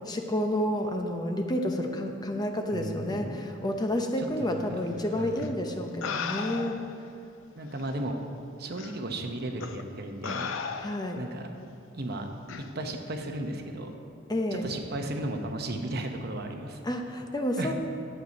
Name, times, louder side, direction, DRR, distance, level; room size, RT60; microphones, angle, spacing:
voice 1, 0.1-6.8 10.8-11.2 14.3-14.7 16.8-17.7, left 1 dB, 20° left, 4 dB, 0.7 m, -30 dB
voice 2, 2.7-3.5 4.2-4.8 5.2-5.6 7.6-8.2 8.6-10.5 11.2-11.5 11.9-12.3 12.7-13.9 14.5-16.8 17.6-17.7, right 1 dB, 55° right, 4 dB, 0.9 m, -35 dB
sound 1, 5.4-5.5 6.0-7.0 7.8-7.9 8.8-9.0 9.6-9.8 10.2-11.2 12.5-12.7, left 5 dB, 80° left, 0.6 m, -35 dB
11.5 x 8.1 x 5.3 m, 2.7 s
head